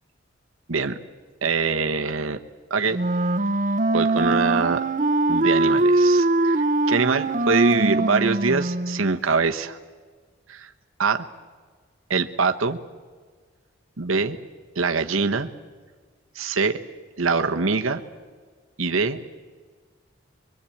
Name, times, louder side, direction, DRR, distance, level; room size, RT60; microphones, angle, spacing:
voice 1, 1.4-2.4 2.7-3.0 3.9-4.8 5.3-9.8 10.5-10.7 11.0-11.3 12.1-12.8 14.0-14.4 14.7-15.5 16.3-16.8 17.2-18.0 18.8-19.2, right 4 dB, 90° right, 6 dB, 1.1 m, -23 dB
Wind instrument woodwind instrument, 2.9-9.1, right 2 dB, 40° right, 0.8 m, -22 dB
24.0 x 23.0 x 8.5 m, 1.5 s
head